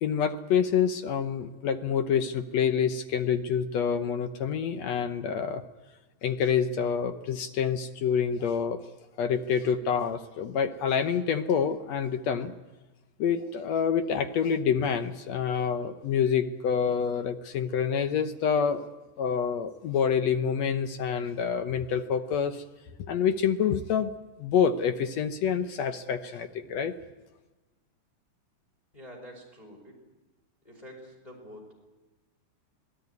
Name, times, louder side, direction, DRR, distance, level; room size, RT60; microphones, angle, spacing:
voice 1, 0.0-5.6 6.2-8.8 9.2-12.5 13.2-18.8 19.2-22.6 23.0-24.1 24.4-26.9, left 7 dB, 70° left, 8 dB, 2.0 m, -27 dB
voice 2, 28.9-29.9 30.6-31.6, equal, 10° left, -1 dB, 4.8 m, -47 dB
27.0 x 18.0 x 9.5 m, 1.2 s
omnidirectional pair, 3.6 m